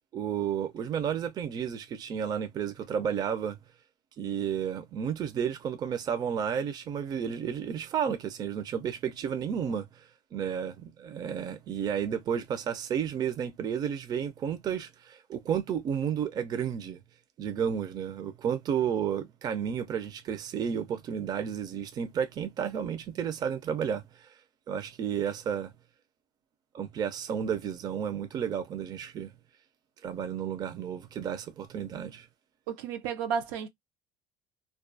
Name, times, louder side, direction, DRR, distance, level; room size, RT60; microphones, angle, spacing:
voice 1, 0.1-3.6 4.2-10.1 10.3-17.0 17.4-24.3 24.7-25.7 26.7-29.3 30.0-32.3, right 8 dB, 40° right, 0.5 m, -32 dB
voice 2, 32.7-33.7, right 7 dB, 85° right, 0.6 m, -32 dB
2.3 x 2.2 x 2.5 m
supercardioid pair, 110°, 10 cm